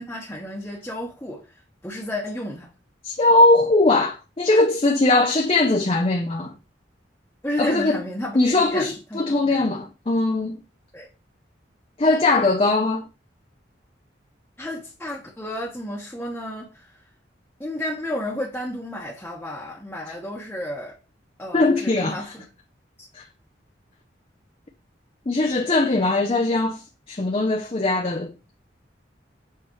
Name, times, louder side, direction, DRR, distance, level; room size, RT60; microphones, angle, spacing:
voice 1, 0.0-1.4 1.8-2.7 7.4-9.7 10.9-11.1 14.6-16.9 17.6-20.9 21.4-22.5, left 1 dB, 10° left, 1.0 m, -32 dB
voice 2, 3.0-6.5 7.6-8.0 8.3-10.6 12.0-13.0 21.5-22.1 23.1-23.2 25.3-26.8 27.1-28.3, left 2 dB, 30° left, 0.5 m, -20 dB
7.6 x 4.6 x 3.1 m
head